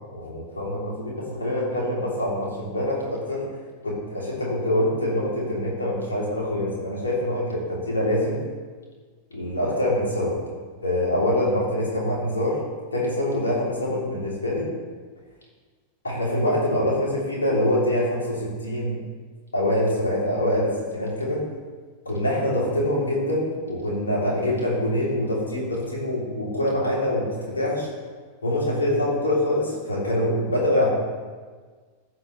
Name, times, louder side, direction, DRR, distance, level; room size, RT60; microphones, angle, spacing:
voice 1, 0.1-3.5 3.8-8.4 9.3-10.4 10.8-12.6 12.9-14.7 16.0-19.0 19.5-21.4 22.0-27.9 28.4-30.9, left 1 dB, 75° left, -4 dB, 3.1 m, -25 dB
15.5 x 5.9 x 3.2 m, 1.5 s
figure-of-eight pair, 90°, 0 cm